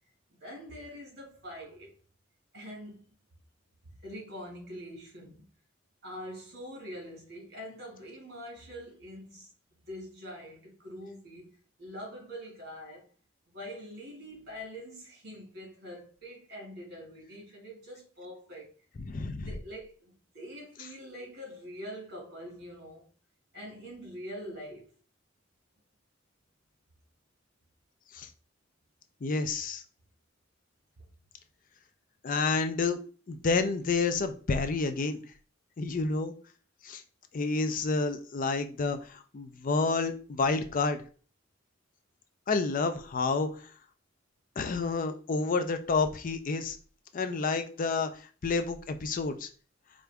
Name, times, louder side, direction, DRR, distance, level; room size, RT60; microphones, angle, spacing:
voice 1, 0.3-1.9 2.5-3.0 3.8-5.5 6.0-9.5 9.9-11.5 11.8-13.1 13.5-18.7 19.4-23.1 23.5-24.9, equal, 55° right, 1.9 m, -44 dB
voice 2, 19.0-19.5 28.1-28.3 29.2-29.8 32.2-33.0 33.3-35.2 35.8-36.3 36.8-37.0 37.3-41.0 42.5-43.5 44.6-46.8 47.1-48.1 48.4-49.5, left 4 dB, 45° left, 0.4 m, -29 dB
4.5 x 2.5 x 3.4 m
head